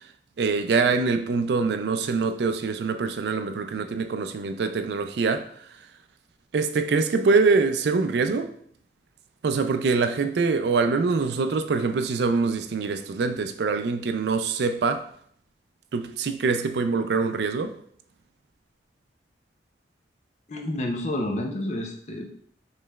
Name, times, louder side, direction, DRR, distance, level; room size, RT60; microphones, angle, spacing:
voice 1, 0.4-5.4 6.5-8.5 9.4-15.0 15.9-17.7, right 4 dB, 70° right, 0.4 m, -24 dB
voice 2, 20.5-22.3, left 1 dB, 40° left, 0.5 m, -29 dB
5.1 x 3.1 x 2.3 m
head